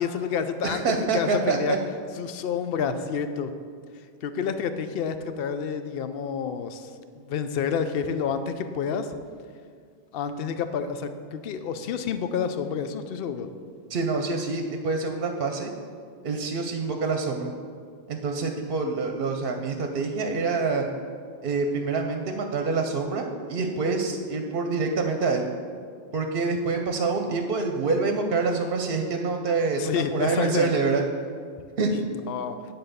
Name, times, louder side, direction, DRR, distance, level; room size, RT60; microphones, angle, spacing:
voice 1, 0.0-1.8 2.2-3.5 4.2-6.9 7.2-9.1 10.1-13.5 29.8-30.7 32.1-32.6, left 7 dB, 70° left, 9 dB, 0.8 m, -29 dB
voice 2, 0.6-1.8 13.9-15.7 16.2-17.5 18.1-20.9 21.4-25.5 26.1-31.0 31.8-31.9, right 4 dB, 65° right, 4 dB, 0.8 m, -26 dB
10.0 x 4.1 x 6.6 m, 2.1 s
omnidirectional pair, 1.0 m